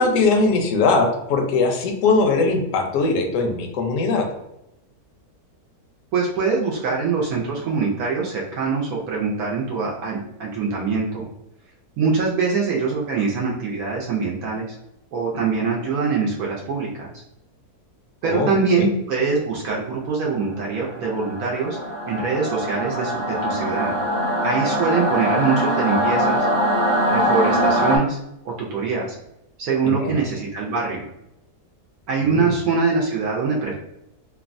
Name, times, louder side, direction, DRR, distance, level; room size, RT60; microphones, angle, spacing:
voice 1, 0.0-4.3 18.2-18.9 29.8-30.1 32.3-32.5, left 3 dB, 65° left, 3 dB, 0.9 m, -20 dB
voice 2, 6.1-11.3 12.0-14.8 15.1-17.1 18.2-21.8 22.0-23.9 24.4-26.5 27.1-28.2 28.4-29.2 29.6-31.1 32.1-33.7, right 4 dB, 75° right, -3 dB, 1.0 m, -23 dB
Singing / Musical instrument, 20.8-28.0, equal, 45° right, 0.4 m, -22 dB
3.2 x 2.1 x 2.5 m, 0.84 s
omnidirectional pair, 1.7 m